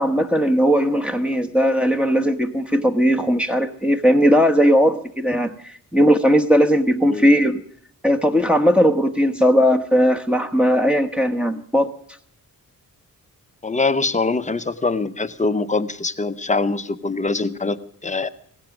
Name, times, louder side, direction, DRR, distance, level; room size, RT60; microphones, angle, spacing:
voice 1, 0.0-7.6 8.0-11.9, equal, 5° right, 1.2 m, -18 dB
voice 2, 13.6-18.3, left 3 dB, 20° left, 0.8 m, -23 dB
17.0 x 15.5 x 5.1 m
wide cardioid pair, 115°, 37 cm